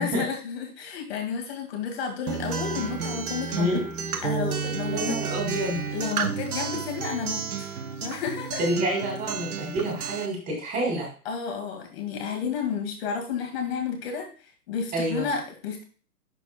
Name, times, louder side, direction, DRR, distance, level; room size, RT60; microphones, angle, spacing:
voice 1, 0.0-3.8 4.2-5.2 5.9-7.7 8.0-8.6 11.3-14.3 14.7-15.8, left 6 dB, 40° left, 4 dB, 2.1 m, -31 dB
Acoustic guitar, 2.3-10.3, right 6 dB, 65° right, 1.0 m, -31 dB
voice 2, 4.9-5.8 8.6-11.1 14.9-15.3, right 1 dB, 20° right, 0 dB, 2.5 m, -27 dB
11.0 x 4.2 x 2.2 m, 0.39 s
figure-of-eight pair, 130°, 47 cm